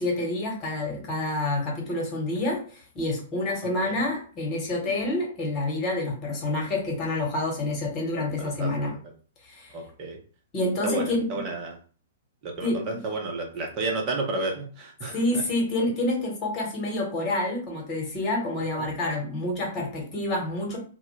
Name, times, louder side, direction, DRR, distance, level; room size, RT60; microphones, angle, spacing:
voice 1, 0.0-8.9 9.4-9.7 10.5-11.4 12.6-13.0 15.1-20.8, left 2 dB, 30° left, -1 dB, 1.1 m, -28 dB
voice 2, 3.6-4.0 8.4-9.0 9.7-10.2 10.8-11.8 12.4-15.4 18.8-18.9, right 2 dB, 35° right, 1 dB, 0.8 m, -32 dB
2.1 x 2.1 x 3.2 m, 0.40 s
figure-of-eight pair, 110°, 0 cm